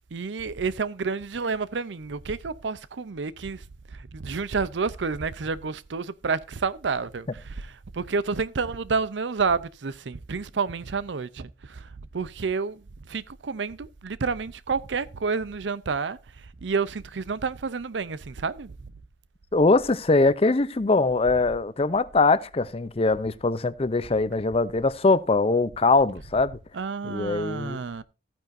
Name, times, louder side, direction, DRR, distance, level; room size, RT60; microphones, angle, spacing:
voice 1, 0.1-3.6 3.9-11.9 12.1-16.2 16.6-18.7 26.7-28.0, right 4 dB, 85° right, 0.6 m, -29 dB
voice 2, 19.5-26.6 27.0-27.8, left 3 dB, 35° left, 0.6 m, -22 dB
14.5 x 9.1 x 2.6 m
head